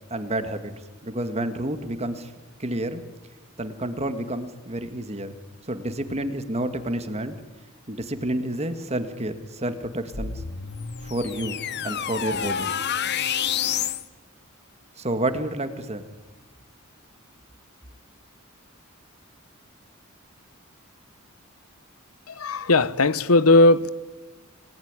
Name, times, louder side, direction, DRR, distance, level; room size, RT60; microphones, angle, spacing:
voice 1, 0.1-0.7 1.0-2.3 2.6-3.0 3.6-5.4 5.7-7.4 7.9-10.4 11.0-12.7 15.0-16.1, right 1 dB, 30° right, 2.0 m, -29 dB
sound 1, 10.1-14.0, left 8 dB, 50° left, 1.1 m, -28 dB
voice 2, 22.3-23.9, left 2 dB, 85° left, 1.1 m, -18 dB
29.5 x 19.0 x 9.8 m
head